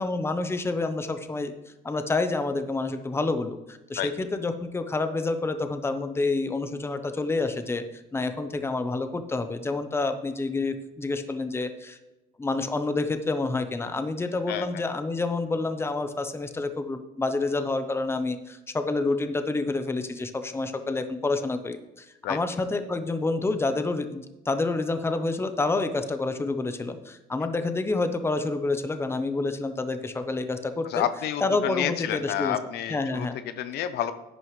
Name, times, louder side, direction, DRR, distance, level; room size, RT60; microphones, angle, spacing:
voice 1, 0.0-1.5 1.8-12.0 12.4-31.1 31.4-32.6 32.9-33.4, left 3 dB, 15° left, 9 dB, 0.8 m, -28 dB
voice 2, 14.5-14.8 22.2-22.4 30.9-34.1, left 11 dB, 75° left, 11 dB, 0.7 m, -29 dB
10.5 x 9.3 x 3.2 m, 1.0 s
cardioid pair, 110°, 17 cm